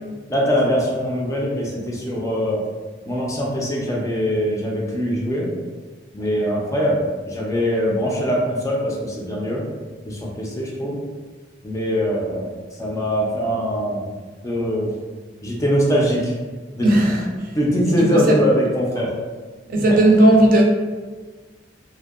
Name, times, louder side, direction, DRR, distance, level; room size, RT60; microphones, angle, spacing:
voice 1, 0.3-2.6 3.1-5.5 6.1-9.6 10.0-11.0 11.6-12.5 12.8-14.1 14.4-14.9 15.4-16.3 16.7-16.9 17.5-19.1, equal, 15° left, -3 dB, 0.4 m, -22 dB
voice 2, 16.8-17.3 17.9-18.4 19.7-20.6, right 1 dB, 50° right, -1 dB, 0.4 m, -15 dB
2.6 x 2.1 x 2.3 m, 1.4 s
head